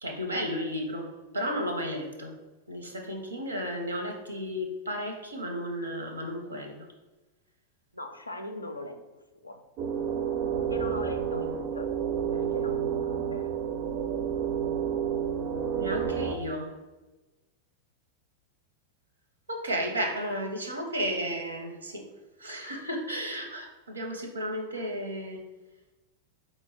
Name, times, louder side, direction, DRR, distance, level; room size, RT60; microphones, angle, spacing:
voice 1, 0.0-2.3 2.7-6.9 15.7-16.7 19.5-22.1 22.4-25.4, equal, 75° right, 3 dB, 0.6 m, -33 dB
voice 2, 7.9-9.6 10.7-11.9 12.3-13.5, left 1 dB, 85° left, 5 dB, 0.4 m, -40 dB
sound 1, 9.8-16.4, right 8 dB, 40° right, 0.4 m, -30 dB
4.5 x 2.0 x 4.0 m, 1.1 s
figure-of-eight pair, 90°, 0 cm